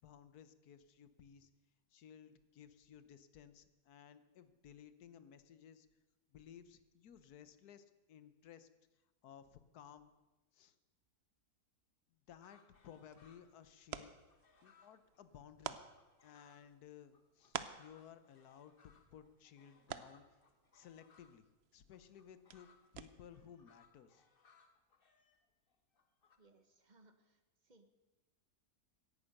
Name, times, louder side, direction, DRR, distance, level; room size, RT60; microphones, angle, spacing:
voice 1, 0.0-1.5 1.9-5.9 6.3-8.7 9.2-10.1 10.5-10.7 12.1-15.8 16.2-20.4 20.7-21.5 21.7-22.7 22.9-24.3, left 8 dB, 80° left, 13 dB, 1.4 m, -58 dB
sound 1, 12.4-13.6 13.9-16.7 17.1-21.4 21.9-26.4, left 5 dB, 40° left, 1.3 m, -70 dB
sound 2, 12.7-23.5, right 8 dB, 55° right, 0.8 m, -52 dB
voice 2, 26.4-27.9, right 2 dB, 30° right, 8 dB, 1.2 m, -68 dB
17.0 x 10.5 x 6.6 m, 1.1 s
omnidirectional pair, 1.6 m